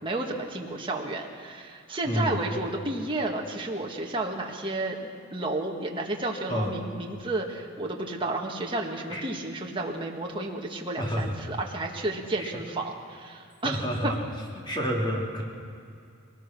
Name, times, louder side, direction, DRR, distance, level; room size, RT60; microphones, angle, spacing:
voice 1, 0.0-14.1, right 2 dB, 25° right, 0 dB, 1.8 m, -32 dB
voice 2, 2.0-2.4 6.5-6.7 9.1-9.2 11.0-11.4 12.4-12.5 13.6-14.2 14.6-15.4, equal, 25° left, -1 dB, 3.1 m, -29 dB
22.0 x 19.5 x 6.1 m, 2.4 s
head